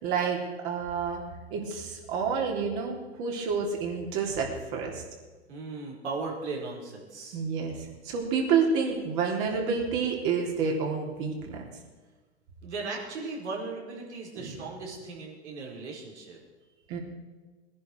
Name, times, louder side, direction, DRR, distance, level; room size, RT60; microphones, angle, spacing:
voice 1, 0.0-1.2 1.5-5.0 7.3-11.6 14.3-14.6 16.9-17.0, right 5 dB, 45° right, 0 dB, 3.6 m, -29 dB
voice 2, 5.5-7.4 12.6-16.4, right 3 dB, 75° right, -2 dB, 4.8 m, -37 dB
19.0 x 10.5 x 4.7 m, 1.3 s
hypercardioid pair, 110°, 34 cm